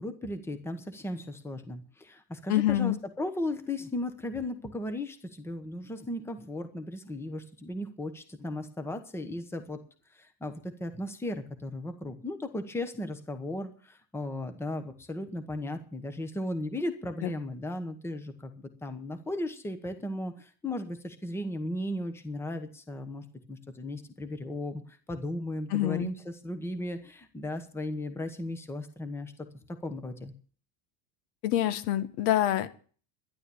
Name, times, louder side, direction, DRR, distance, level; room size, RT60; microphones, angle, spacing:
voice 1, 0.0-9.8 10.1-30.3, left 1 dB, 5° left, 9 dB, 1.1 m, -36 dB
voice 2, 2.5-3.0 17.2-17.3 25.7-26.1 31.4-32.7, left 13 dB, 90° left, 11 dB, 1.7 m, -26 dB
12.0 x 11.0 x 7.1 m, 0.41 s
cardioid pair, 180°, 46 cm